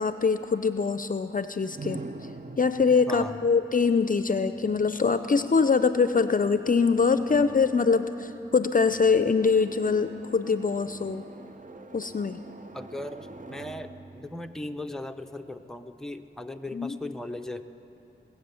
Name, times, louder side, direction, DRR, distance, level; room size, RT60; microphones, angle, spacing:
voice 1, 0.0-2.0 2.6-11.3 11.9-12.4 16.7-17.0, left 5 dB, 40° left, 11 dB, 0.5 m, -24 dB
sound 1, 1.7-15.5, right 3 dB, 40° right, 0.7 m, -46 dB
voice 2, 12.7-17.6, left 1 dB, ahead, 7 dB, 0.7 m, -38 dB
21.0 x 8.1 x 7.0 m, 2.8 s
cardioid pair, 40°, 21 cm